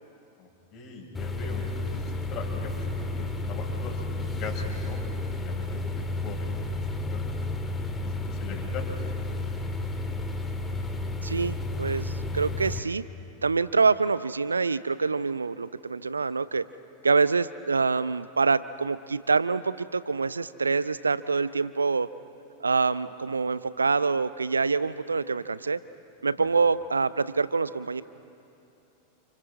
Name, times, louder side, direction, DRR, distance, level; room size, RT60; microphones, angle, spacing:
voice 1, 0.4-5.0 5.4-6.8 7.1-7.5 8.0-9.3 26.4-26.5, left 4 dB, 35° left, 0 dB, 6.1 m, -41 dB
sound 1, 1.1-12.8, left 2 dB, 15° left, 2.0 m, -32 dB
voice 2, 11.2-13.0 13.4-16.6 17.0-22.1 22.6-25.8 26.2-28.0, right 4 dB, 75° right, 17 dB, 0.5 m, -26 dB
29.5 x 29.5 x 4.2 m, 2.8 s
figure-of-eight pair, 90°, 0 cm